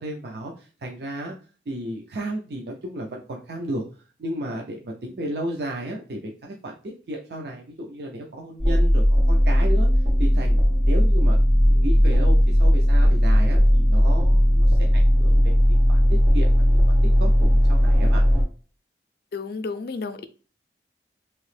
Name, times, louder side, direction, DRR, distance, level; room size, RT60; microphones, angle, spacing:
voice 1, 0.0-1.3 1.7-3.8 4.2-6.7 7.1-9.9 10.2-15.6 15.9-16.0 16.3-16.8 17.2-18.2, right 1 dB, 60° right, 0 dB, 0.5 m, -33 dB
sound 1, 8.6-18.4, equal, 75° right, 1.4 m, -17 dB
voice 2, 19.3-20.3, left 4 dB, 55° left, 10 dB, 0.4 m, -31 dB
2.9 x 2.8 x 3.2 m, 0.38 s
head